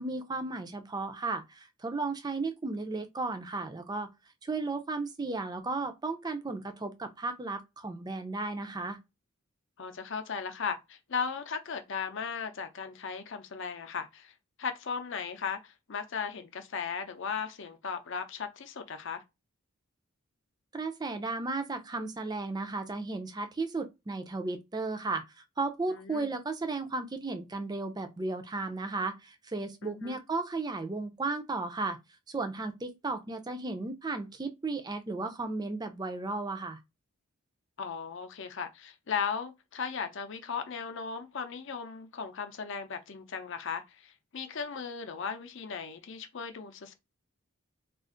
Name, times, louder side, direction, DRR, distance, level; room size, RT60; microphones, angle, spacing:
voice 1, 0.0-4.1 4.4-9.0 20.7-32.0 32.3-36.8, right 3 dB, 20° right, 0.4 m, -34 dB
voice 2, 9.8-19.2 25.9-26.3 29.8-30.2 37.8-46.9, left 6 dB, 55° left, 0.6 m, -37 dB
2.5 x 2.4 x 3.7 m
head